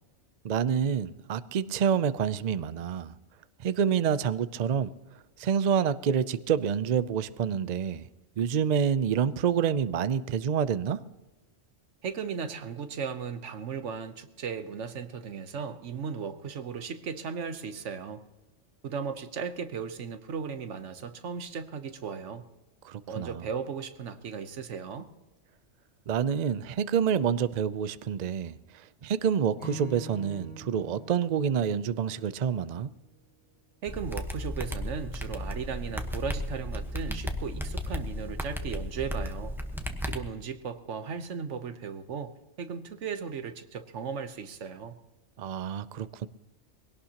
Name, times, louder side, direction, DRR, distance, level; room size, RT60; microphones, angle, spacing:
voice 1, 0.4-3.1 3.6-4.9 5.4-8.1 8.4-11.0 22.8-23.4 26.1-28.6 29.0-32.9 45.4-46.3, right 7 dB, 50° right, 14 dB, 0.5 m, -27 dB
voice 2, 12.0-18.2 18.8-22.5 23.1-25.1 33.8-39.5 40.0-45.0, right 6 dB, 85° right, 10 dB, 1.3 m, -36 dB
Acoustic guitar / Strum, 29.6-32.9, right 1 dB, 40° left, 6.0 m, -44 dB
sound 1, 33.9-40.2, equal, ahead, 1.0 m, -34 dB
22.0 x 17.5 x 2.9 m, 1.1 s
omnidirectional pair, 1.2 m